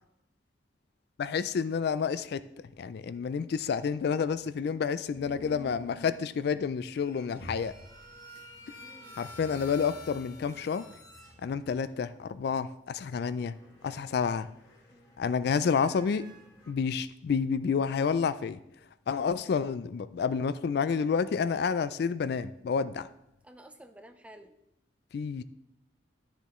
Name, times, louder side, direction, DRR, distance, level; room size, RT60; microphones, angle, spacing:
voice 1, 1.2-2.4 2.8-7.7 9.2-10.9 11.4-13.5 13.8-14.5 15.2-16.3 16.7-18.6 19.1-23.1 25.1-25.4, left 6 dB, 60° left, 0.3 m, -29 dB
sound 1, 5.1-12.0 13.0-16.7, left 2 dB, 20° left, 1.9 m, -50 dB
voice 2, 8.6-9.2 14.9-15.2 19.1-19.3 23.4-24.6, right 1 dB, 5° right, 0.5 m, -53 dB
11.5 x 6.8 x 3.1 m
head